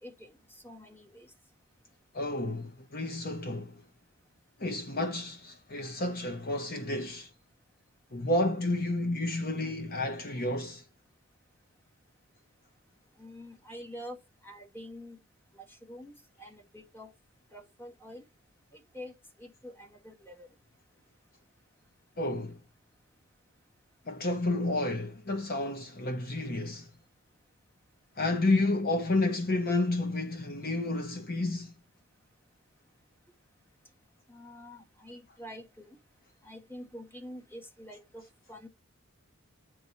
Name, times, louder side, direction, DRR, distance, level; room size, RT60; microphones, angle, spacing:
voice 1, 0.0-1.3 13.2-15.2 15.5-17.1 17.5-18.2 18.7-20.5 34.3-36.0 36.4-38.2 38.5-38.7, equal, 10° left, 1.5 m, -47 dB
voice 2, 2.1-3.8 4.6-7.3 8.1-10.8 22.2-22.6 24.1-26.9 28.2-31.7, left 2 dB, 45° left, 0.9 m, -30 dB
9.1 x 3.1 x 5.4 m
head